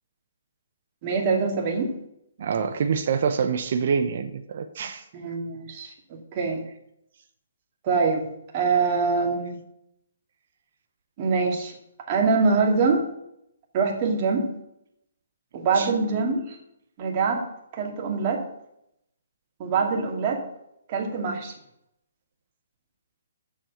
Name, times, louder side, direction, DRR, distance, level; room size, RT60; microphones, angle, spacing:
voice 1, 1.0-1.9 5.1-6.6 7.8-8.3 8.5-9.6 11.2-11.7 12.1-13.0 13.7-14.5 15.5-16.6 17.0-17.5 17.7-18.4 19.6-20.4 20.9-21.5, right 4 dB, 40° right, 1 dB, 2.3 m, -24 dB
voice 2, 2.4-5.0 15.7-15.9, right 6 dB, 55° right, 8 dB, 0.8 m, -26 dB
7.4 x 7.2 x 6.8 m, 0.78 s
hypercardioid pair, 140°, 0 cm